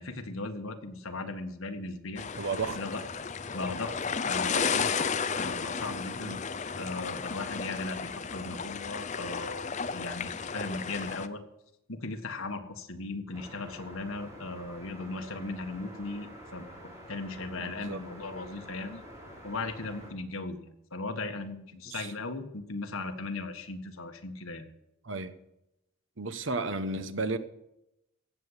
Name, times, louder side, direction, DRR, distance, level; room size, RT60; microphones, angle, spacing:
voice 1, 0.0-2.2 2.7-3.0 3.5-3.9 4.2-6.3 6.7-11.4 11.9-19.0 19.4-24.7, left 3 dB, 75° left, 1.7 m, -38 dB
sound 1, 2.2-11.3, left 5 dB, 35° left, 0.6 m, -33 dB
voice 2, 2.2-2.8 6.2-6.4 17.6-18.0 21.9-22.1 25.0-25.3 26.2-27.4, right 3 dB, 60° right, 1.0 m, -33 dB
sound 2, 13.3-20.1, equal, 15° right, 4.6 m, -48 dB
16.5 x 7.2 x 8.1 m
head